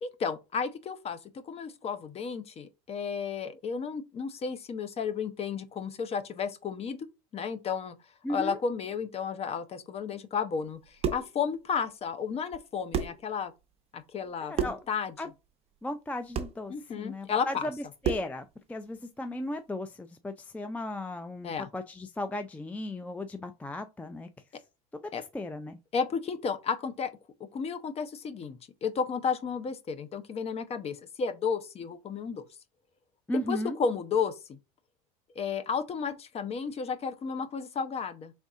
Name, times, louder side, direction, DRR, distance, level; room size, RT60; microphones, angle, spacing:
voice 1, 0.0-1.2 1.4-7.0 7.3-7.9 8.3-13.5 13.9-15.1 16.7-17.7 21.4-21.7 25.1-25.2 25.9-27.1 27.5-32.4 33.5-34.6 35.4-38.3, left 6 dB, 35° left, 0.8 m, -33 dB
voice 2, 8.2-8.6 14.4-14.8 15.2-15.3 15.8-24.3 24.9-25.8 33.3-33.8, left 1 dB, 10° left, 0.4 m, -36 dB
sound 1, 10.7-11.4 12.5-12.6 12.9-13.3 14.5-14.9 16.3-16.6 18.0-18.4, right 7 dB, 35° right, 0.8 m, -31 dB
4.0 x 3.5 x 3.6 m
supercardioid pair, 100°, 19 cm